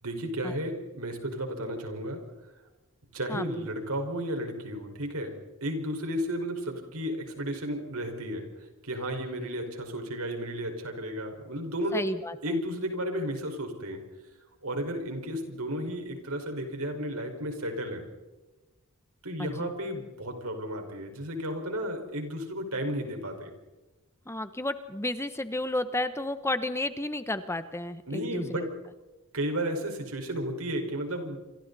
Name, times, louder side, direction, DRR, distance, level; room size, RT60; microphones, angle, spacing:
voice 1, 0.0-2.2 3.1-8.5 8.8-12.1 12.4-14.0 14.6-18.1 19.2-23.5 28.1-28.7 29.3-31.4, equal, 75° right, 4 dB, 5.2 m, -33 dB
voice 2, 3.3-3.7 11.9-12.4 19.4-19.7 24.3-28.6, left 1 dB, 10° left, 11 dB, 1.0 m, -32 dB
28.0 x 26.5 x 4.2 m, 1.1 s
head